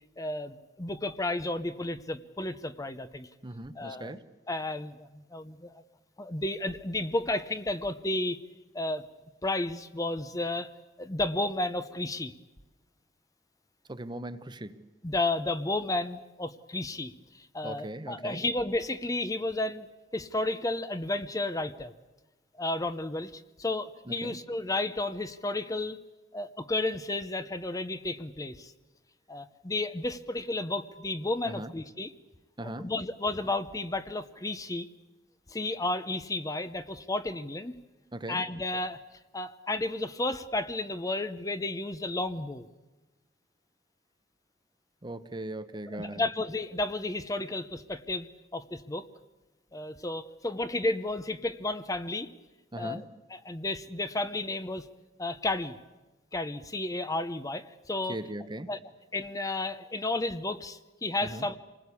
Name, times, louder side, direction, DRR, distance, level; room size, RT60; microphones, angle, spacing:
voice 1, 0.2-3.3 3.7-4.2 4.5-5.8 6.2-8.4 8.7-9.0 9.4-10.7 11.0-12.3 15.0-19.9 20.1-21.9 22.6-26.0 26.3-28.7 29.3-32.1 32.6-34.9 35.5-37.7 38.3-39.0 39.3-42.7 45.9-49.1 49.7-52.3 52.8-53.0 53.3-54.9 55.2-55.8 56.3-58.2 58.7-58.8 59.1-61.6, left 2 dB, 20° left, 11 dB, 0.8 m, -32 dB
voice 2, 3.4-4.3 13.9-14.8 17.6-18.4 24.1-24.4 31.5-31.7 32.6-32.9 38.1-38.4 45.0-46.2 52.7-53.0 58.1-58.7 61.2-61.5, right 1 dB, 25° right, 11 dB, 0.9 m, -39 dB
27.0 x 20.0 x 8.4 m, 1.1 s
head